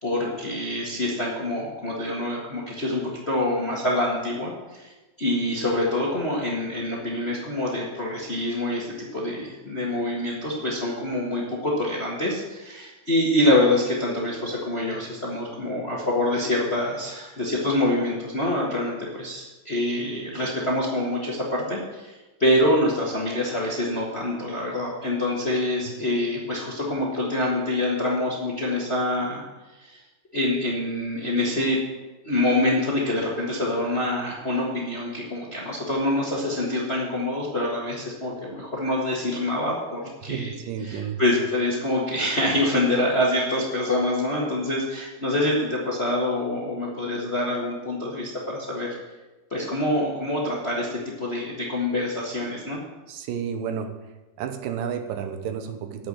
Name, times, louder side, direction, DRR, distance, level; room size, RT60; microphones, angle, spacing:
voice 1, 0.0-29.4 29.8-30.0 30.3-31.8 32.2-40.5 40.8-49.0 49.5-52.8, left 1 dB, 35° left, -3 dB, 1.0 m, -26 dB
voice 2, 40.3-41.2 53.1-53.9 54.4-56.1, right 8 dB, 85° right, 7 dB, 2.6 m, -31 dB
9.2 x 7.2 x 7.7 m, 1.1 s
omnidirectional pair, 3.9 m